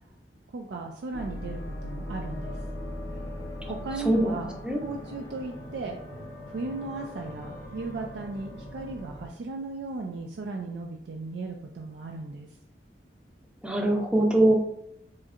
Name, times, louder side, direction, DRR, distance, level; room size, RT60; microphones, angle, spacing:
voice 1, 0.5-2.6 3.7-6.0 6.5-12.5, right 3 dB, 75° right, 2 dB, 0.4 m, -36 dB
sound 1, 1.1-9.3, left 1 dB, 65° left, 0.7 m, -39 dB
voice 2, 4.1-4.4 4.6-4.8 13.6-14.5, right 1 dB, 5° right, 1 dB, 0.5 m, -22 dB
4.3 x 2.7 x 2.5 m, 0.74 s
head